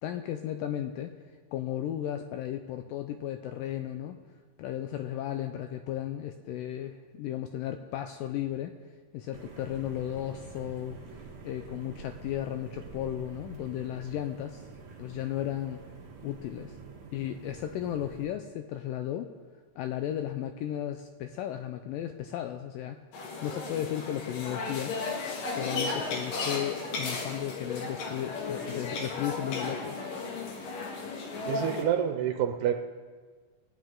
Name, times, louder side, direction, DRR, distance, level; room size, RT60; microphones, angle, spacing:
voice 1, 0.0-1.1 1.5-4.2 4.6-8.8 9.1-14.6 15.0-15.8 16.2-16.7 17.1-19.3 19.8-23.0 23.4-25.0 25.4-30.0, left 11 dB, 85° left, 7 dB, 2.0 m, -35 dB
sound 1, 9.3-18.3, right 5 dB, 60° right, 2.2 m, -47 dB
sound 2, 23.1-31.8, left 3 dB, 65° left, 3.1 m, -35 dB
voice 2, 31.5-32.8, right 10 dB, 90° right, 5 dB, 2.7 m, -27 dB
20.5 x 9.6 x 3.8 m, 1.5 s
omnidirectional pair, 4.5 m